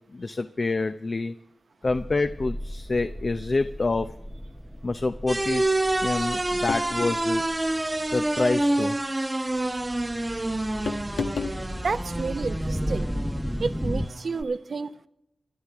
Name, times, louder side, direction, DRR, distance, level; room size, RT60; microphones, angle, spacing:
voice 1, 0.1-1.3 1.8-4.1 4.8-5.6 6.0-7.4 8.1-9.0, left 3 dB, 50° left, 9 dB, 0.6 m, -27 dB
sound 1, 1.8-8.6 9.6-14.1, equal, 5° left, 0.7 m, -35 dB
sound 2, 5.3-14.4, right 1 dB, 25° right, 0.9 m, -28 dB
sound 3, 6.7-7.3 8.6-8.9 10.9-11.6, left 5 dB, 85° left, 1.2 m, -32 dB
voice 2, 11.8-13.1 13.6-15.1, right 4 dB, 65° right, 11 dB, 0.7 m, -30 dB
26.0 x 11.0 x 3.6 m, 0.84 s
cardioid pair, 45°, 0 cm